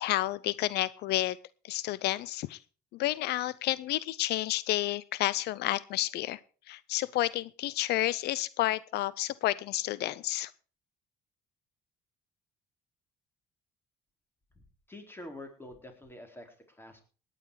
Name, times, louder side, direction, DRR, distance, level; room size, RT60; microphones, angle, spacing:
voice 1, 0.0-1.4 1.6-2.6 2.9-6.4 6.7-10.5, left 15 dB, 75° left, 20 dB, 0.5 m, -30 dB
voice 2, 14.6-17.0, left 1 dB, 15° left, 5 dB, 4.0 m, -47 dB
17.5 x 10.0 x 4.8 m, 0.38 s
cardioid pair, 110°, 17 cm